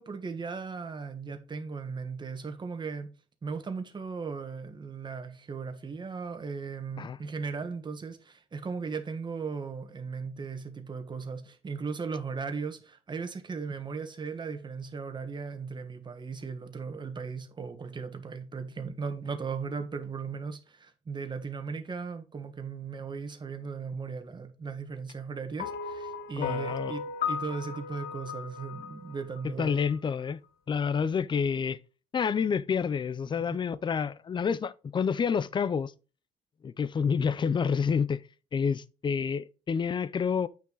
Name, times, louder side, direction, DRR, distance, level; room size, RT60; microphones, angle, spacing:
voice 1, 0.0-3.1 3.4-29.8 33.5-33.6, right 5 dB, 25° right, 1.4 m, -37 dB
sound 1, 25.6-29.9, left 6 dB, 65° left, 1.1 m, -36 dB
voice 2, 26.4-26.9 29.6-30.4 30.7-31.8 32.1-35.9 36.6-38.2 38.5-40.5, left 6 dB, 30° left, 0.5 m, -28 dB
8.8 x 5.9 x 4.0 m
cardioid pair, 110°, 17 cm